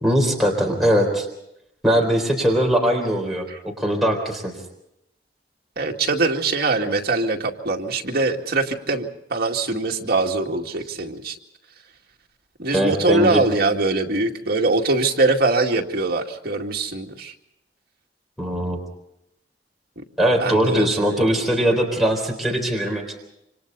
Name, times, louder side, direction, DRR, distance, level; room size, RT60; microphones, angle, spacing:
voice 1, 0.0-1.3 1.8-3.5 3.8-4.5 12.7-13.4 18.4-18.8 20.2-23.0, equal, ahead, -1 dB, 3.9 m, -20 dB
voice 2, 5.8-11.4 12.6-17.3 20.0-20.1 20.4-21.3, right 3 dB, 60° right, 2 dB, 2.2 m, -22 dB
28.0 x 26.5 x 4.0 m, 0.80 s
head